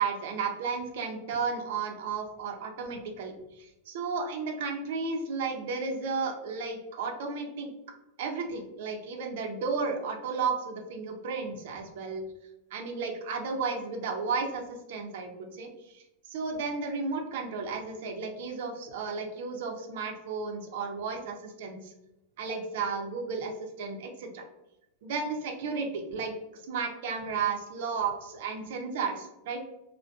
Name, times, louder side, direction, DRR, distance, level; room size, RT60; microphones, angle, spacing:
voice 1, 0.0-7.7 8.2-12.2 12.7-16.0 16.3-21.9 22.4-24.4 25.0-26.3 26.6-29.6, right 5 dB, 70° right, 3 dB, 0.5 m, -33 dB
2.3 x 2.1 x 2.5 m, 0.89 s
supercardioid pair, 130°, 0 cm